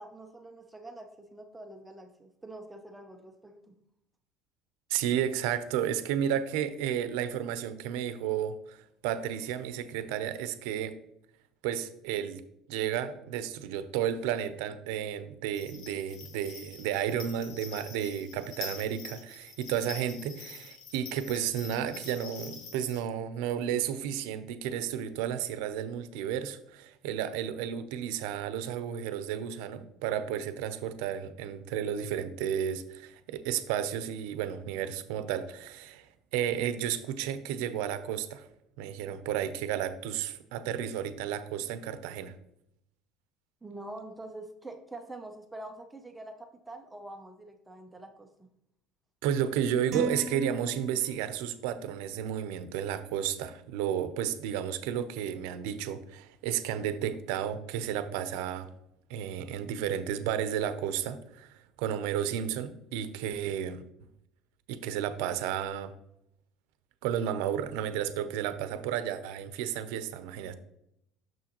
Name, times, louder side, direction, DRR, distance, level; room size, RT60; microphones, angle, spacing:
voice 1, 0.0-3.7 43.6-48.5, right 2 dB, 5° right, 5 dB, 0.5 m, -45 dB
voice 2, 4.9-10.9 11.6-12.4 12.7-38.4 38.8-42.3 49.2-58.7 59.1-61.5 61.8-63.8 64.7-65.9 67.0-70.6, right 9 dB, 80° right, 12 dB, 0.6 m, -32 dB
sound 1, 15.5-23.0, left 5 dB, 60° left, 1.2 m, -46 dB
sound 2, 49.9-51.4, right 1 dB, 45° right, 0.9 m, -37 dB
6.6 x 6.2 x 2.9 m, 0.78 s
cardioid pair, 155°, 0 cm